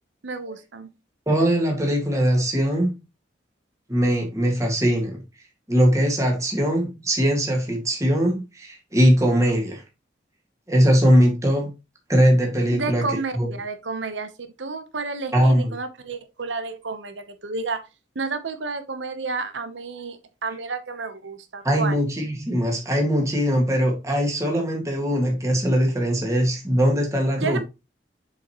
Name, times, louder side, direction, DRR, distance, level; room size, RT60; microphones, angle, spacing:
voice 1, 0.2-0.9 12.7-17.8 18.1-22.0 27.4-27.6, right 4 dB, 75° right, 1.0 m, -31 dB
voice 2, 1.3-3.0 3.9-5.2 5.7-9.8 10.7-11.7 12.1-13.1 13.3-13.5 15.3-15.7 21.6-27.6, equal, 15° right, 1.9 m, -21 dB
7.2 x 5.2 x 3.0 m
head